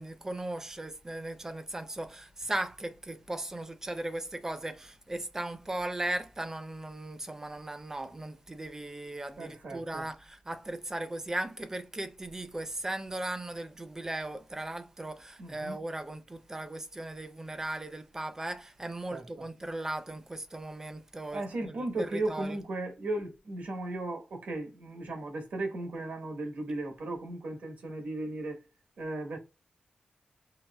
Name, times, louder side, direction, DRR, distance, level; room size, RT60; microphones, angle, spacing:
voice 1, 0.0-22.6, right 1 dB, 15° right, 0.5 m, -37 dB
voice 2, 9.4-10.1 15.4-15.8 19.1-19.4 21.3-28.6 29.0-29.4, right 2 dB, 80° right, 1.4 m, -36 dB
5.6 x 2.9 x 2.2 m
wide cardioid pair, 145°, 3 cm